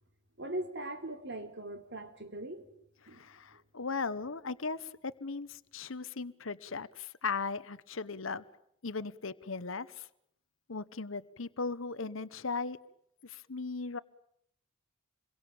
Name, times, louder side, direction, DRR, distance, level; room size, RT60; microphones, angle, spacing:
voice 1, 0.4-2.7 3.1-3.3, right 1 dB, 55° right, 6 dB, 3.8 m, -40 dB
voice 2, 3.1-8.4 8.8-10.1 10.7-12.8 13.2-14.0, left 4 dB, 70° left, 15 dB, 1.0 m, -37 dB
28.0 x 23.0 x 8.7 m, 0.74 s
head